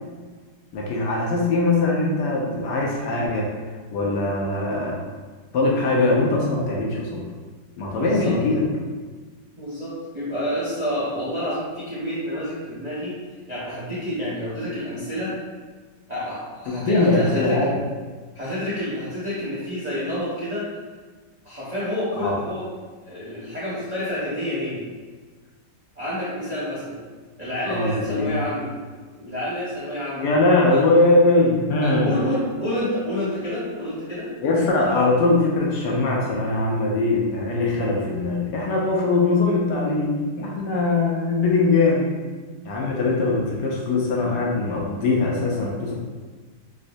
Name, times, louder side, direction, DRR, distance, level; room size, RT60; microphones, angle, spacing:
voice 1, 0.7-3.5 3.9-5.0 5.5-7.2 7.8-8.6 16.8-17.7 22.2-22.3 27.7-28.4 30.2-32.1 34.4-42.1 42.6-45.9, left 2 dB, 75° left, -3 dB, 1.2 m, -21 dB
voice 2, 8.0-8.4 9.6-13.1 13.5-15.3 16.1-17.6 18.3-20.7 21.4-22.6 23.0-24.8 26.0-27.0 27.4-28.7 29.1-30.3 30.7-30.8 31.8-34.3 34.8-34.9, left 1 dB, 30° right, -10 dB, 0.7 m, -29 dB
4.8 x 2.1 x 2.6 m, 1.4 s
omnidirectional pair, 2.0 m